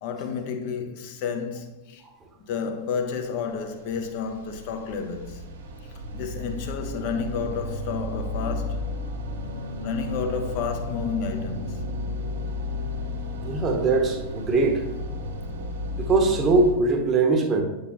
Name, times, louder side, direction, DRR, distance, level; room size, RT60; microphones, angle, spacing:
voice 1, 0.0-2.0 2.4-5.4 5.9-8.9 9.8-11.8, left 6 dB, 45° left, 0.8 m, -31 dB
sound 1, 3.5-16.7, left 2 dB, 60° right, 1.2 m, -33 dB
voice 2, 13.4-14.8 16.0-17.6, right 3 dB, 25° right, 1.1 m, -21 dB
8.9 x 5.6 x 3.0 m
figure-of-eight pair, 90°, 0 cm